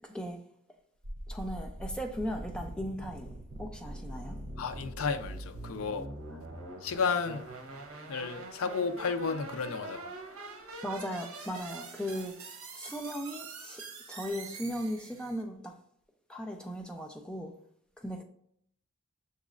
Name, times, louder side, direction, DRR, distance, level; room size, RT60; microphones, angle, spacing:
voice 1, 0.0-0.4 1.3-3.3 3.6-4.4 10.8-12.3 12.8-15.7 16.3-17.5 18.0-18.2, equal, 5° left, 0.4 m, -37 dB
sound 1, 1.0-15.4, right 2 dB, 80° right, 0.8 m, -44 dB
voice 2, 4.6-6.1 6.8-7.5 8.1-10.0, left 5 dB, 70° left, 0.4 m, -32 dB
6.4 x 3.0 x 2.5 m
head